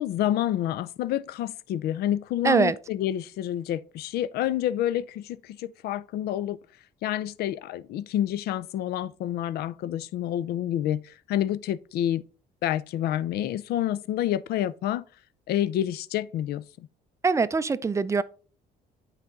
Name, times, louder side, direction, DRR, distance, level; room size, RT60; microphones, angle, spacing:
voice 1, 0.0-6.6 7.0-12.2 12.6-15.0 15.5-16.9, left 12 dB, 70° left, 0.5 m, -28 dB
voice 2, 2.4-2.7 17.2-18.2, right 4 dB, 15° right, 0.4 m, -22 dB
9.2 x 4.1 x 3.6 m
cardioid pair, 110°, 17 cm